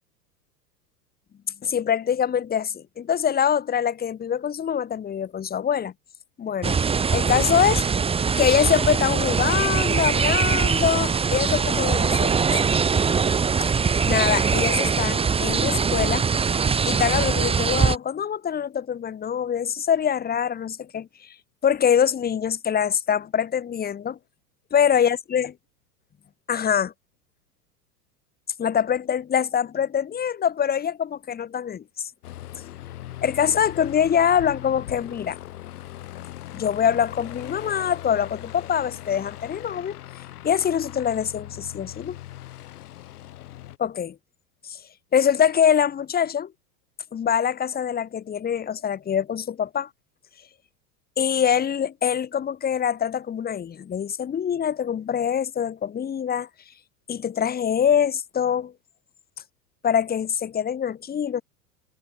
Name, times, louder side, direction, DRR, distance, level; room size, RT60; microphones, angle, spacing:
voice 1, 1.6-5.9 6.4-6.8 7.1-7.8 8.4-12.4 14.0-16.6 16.9-21.3 21.6-24.2 24.7-25.5 26.5-26.9 28.6-31.8 33.2-35.4 36.5-39.9 40.4-42.2 43.8-44.2 44.6-44.8 45.1-46.5 47.1-49.9 51.2-56.5 57.1-58.7 59.8-61.4, left 8 dB, 20° left, 1.3 m, -24 dB
sound 1, 6.6-18.0, right 5 dB, 10° right, 0.9 m, -22 dB
Aircraft, 32.2-43.8, left 14 dB, 70° left, 4.7 m, -39 dB
hypercardioid pair, 100°, 47 cm